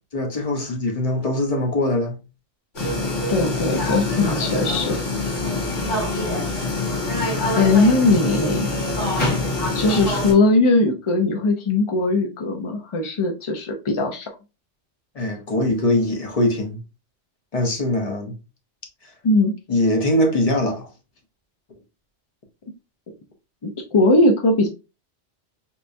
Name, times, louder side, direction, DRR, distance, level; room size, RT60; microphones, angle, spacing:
voice 1, 0.1-2.2 15.1-16.8 17.5-18.4 19.0-19.1 19.7-20.9, left 1 dB, 35° left, 0.7 m, -22 dB
sound 1, 2.7-10.3, left 2 dB, 80° left, 2.5 m, -24 dB
voice 2, 3.3-5.0 7.5-8.7 9.7-14.3 19.2-19.5 23.6-24.7, left 2 dB, 55° left, 0.3 m, -19 dB
4.5 x 2.2 x 2.5 m
omnidirectional pair, 1.2 m